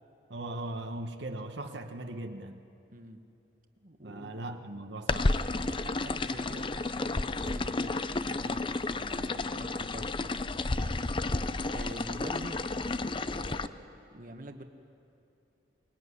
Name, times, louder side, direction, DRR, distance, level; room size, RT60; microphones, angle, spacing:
voice 1, 0.3-2.6 4.0-5.4, right 1 dB, 75° right, 5 dB, 1.3 m, -39 dB
voice 2, 2.9-3.2 3.8-4.3 5.6-11.4 11.7-14.6, right 1 dB, 50° right, 6 dB, 1.5 m, -47 dB
sound 1, 5.1-13.7, left 2 dB, 30° left, 0.6 m, -31 dB
24.0 x 21.5 x 9.8 m, 2.7 s
head